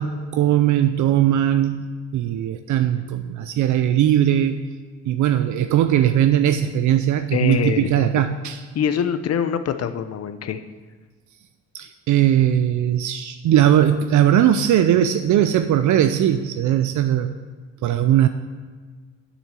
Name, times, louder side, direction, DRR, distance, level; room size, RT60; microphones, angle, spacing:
voice 1, 0.0-4.6 5.1-8.7 11.7-17.3 17.8-18.3, right 11 dB, 75° right, 8 dB, 0.6 m, -19 dB
voice 2, 7.3-8.1 8.7-10.6, left 8 dB, 55° left, 11 dB, 0.8 m, -24 dB
7.3 x 7.0 x 7.5 m, 1.5 s
cardioid pair, 90°, 30 cm